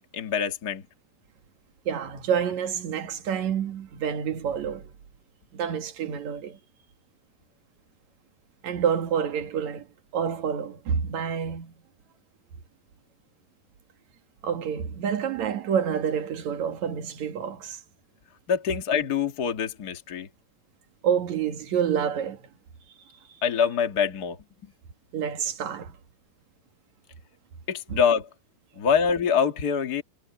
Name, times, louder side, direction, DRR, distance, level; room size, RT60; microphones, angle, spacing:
voice 1, 0.1-0.8 18.5-20.3 23.4-24.4 27.7-28.3 28.8-30.0, left 7 dB, 60° left, 0.9 m, -25 dB
voice 2, 1.9-4.9 5.5-6.6 8.6-9.9 10.1-11.7 14.4-17.8 21.0-22.4 25.1-26.0 27.9-28.0, right 8 dB, 55° right, 2.7 m, -28 dB
omnidirectional pair, 4.7 m